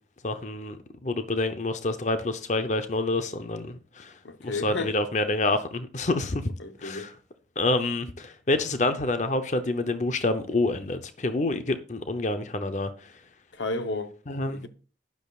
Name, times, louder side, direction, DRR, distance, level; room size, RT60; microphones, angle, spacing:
voice 1, 0.2-4.1 4.4-6.5 6.8-7.1 7.6-13.1 14.3-14.6, left 2 dB, 40° left, 0.7 m, -27 dB
voice 2, 4.2-5.0 6.6-7.1 13.5-14.1 14.5-14.7, left 2 dB, 85° left, 0.9 m, -32 dB
12.0 x 10.5 x 2.4 m
head